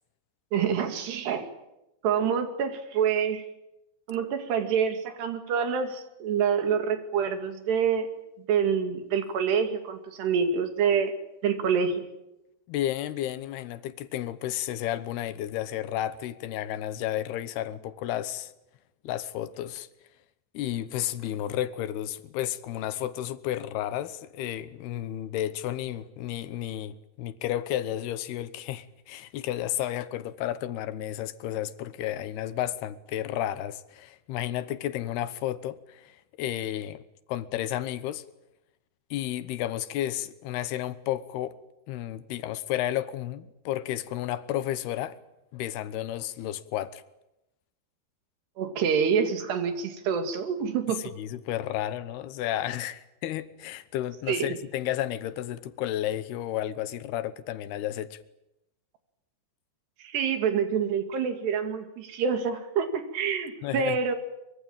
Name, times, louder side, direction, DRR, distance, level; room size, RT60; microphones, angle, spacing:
voice 1, 0.5-1.5 2.0-3.4 4.1-8.1 8.5-11.1 11.4-12.1 48.6-51.0 54.3-54.5 60.0-64.2, right 7 dB, 80° right, 4.5 m, -27 dB
voice 2, 12.7-18.5 19.0-19.9 20.5-37.0 37.3-38.2 39.1-41.6 41.9-45.2 45.5-47.0 51.0-58.2 63.6-64.0, left 12 dB, 80° left, 3.0 m, -32 dB
24.0 x 23.5 x 8.9 m
omnidirectional pair, 4.7 m